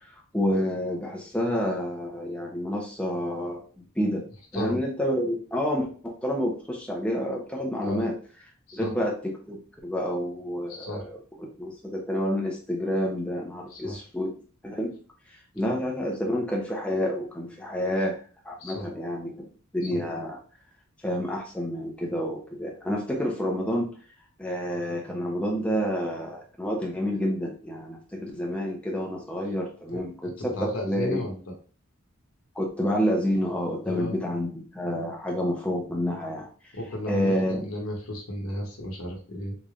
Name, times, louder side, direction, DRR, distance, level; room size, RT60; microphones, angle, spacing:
voice 1, 0.3-3.6 4.0-4.2 4.5-8.1 8.7-11.2 11.6-14.3 14.6-14.9 15.6-18.2 18.4-19.3 19.7-20.4 21.0-23.9 24.4-31.2 32.6-36.5 37.1-37.7, equal, 5° left, -1 dB, 0.6 m, -29 dB
voice 2, 10.7-11.1 13.7-14.0 15.6-15.7 18.6-18.9 19.9-20.0 29.9-30.1 30.4-31.5 33.8-34.2 36.7-39.6, left 1 dB, 75° left, 1 dB, 1.0 m, -34 dB
3.9 x 3.2 x 2.4 m, 0.40 s
head